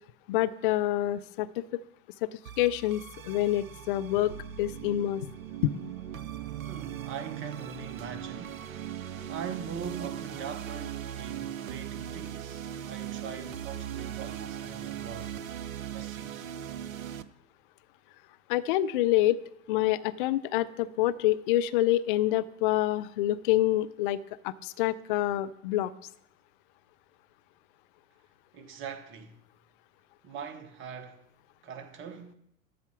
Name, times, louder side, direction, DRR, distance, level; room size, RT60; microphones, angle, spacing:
voice 1, 0.3-1.8 2.2-5.3 5.6-5.8 18.5-19.4 19.7-25.9, left 14 dB, 40° left, 0.4 m, -27 dB
sound 1, 2.5-17.2, right 10 dB, 70° right, 0.6 m, -39 dB
voice 2, 6.6-8.6 8.9-15.6 15.9-16.5 28.5-29.4 30.2-31.2 31.6-32.3, right 6 dB, 30° right, 1.1 m, -42 dB
12.5 x 4.2 x 6.9 m
figure-of-eight pair, 90°, 42 cm